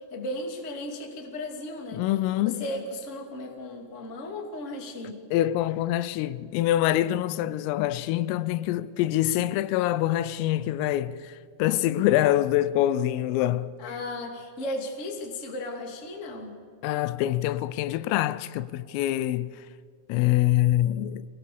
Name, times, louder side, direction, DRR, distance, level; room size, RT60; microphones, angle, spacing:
voice 1, 0.1-2.0 2.4-5.2 13.8-16.6, left 1 dB, 30° left, 1.4 m, -35 dB
voice 2, 1.9-2.7 5.3-13.7 16.8-19.5 20.1-21.3, left 13 dB, 85° left, 3.3 m, -25 dB
25.5 x 18.0 x 7.0 m
omnidirectional pair, 5.9 m